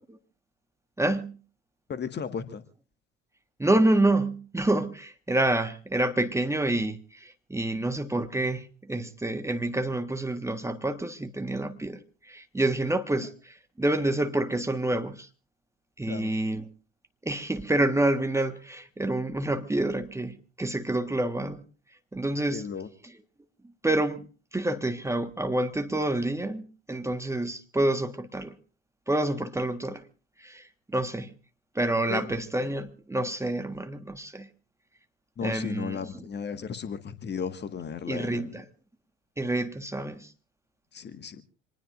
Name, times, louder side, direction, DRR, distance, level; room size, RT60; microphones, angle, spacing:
voice 1, 1.0-1.4 3.6-15.3 16.0-16.6 17.2-21.6 22.1-22.7 23.0-23.1 23.6-24.3 24.5-28.5 29.1-30.0 30.4-31.3 31.7-34.5 35.4-36.3 38.1-38.6 39.4-40.3, right 1 dB, 5° right, 1.5 m, -28 dB
voice 2, 1.9-2.6 16.1-16.3 22.5-22.9 32.1-32.3 35.4-38.5 40.9-41.4, left 6 dB, 30° left, 1.7 m, -35 dB
27.0 x 20.0 x 2.5 m
figure-of-eight pair, 65°, 37 cm